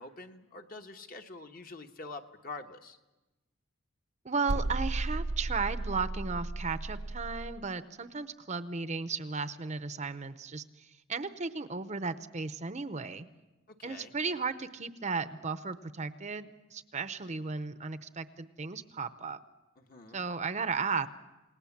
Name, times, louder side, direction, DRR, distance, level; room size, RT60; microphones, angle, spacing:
voice 1, 0.0-3.0 13.8-14.1 19.8-20.2, left 3 dB, 40° left, 5 dB, 1.2 m, -46 dB
voice 2, 4.2-13.3 13.8-19.4 20.1-21.1, right 4 dB, 30° right, 11 dB, 0.7 m, -35 dB
sound 1, 4.5-7.6, right 2 dB, 70° right, 0.9 m, -34 dB
28.5 x 18.5 x 7.3 m, 1.1 s
head